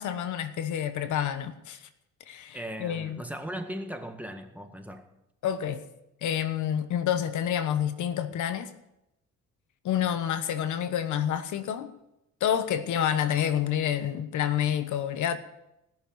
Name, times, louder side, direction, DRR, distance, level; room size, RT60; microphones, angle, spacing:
voice 1, 0.0-1.8 2.3-3.2 5.4-5.9 6.2-8.7 9.8-11.9 12.4-15.4, left 9 dB, 80° left, 1.2 m, -28 dB
voice 2, 2.5-5.1, equal, 5° right, 1.7 m, -38 dB
19.0 x 6.7 x 8.1 m
cardioid pair, 90°, 30 cm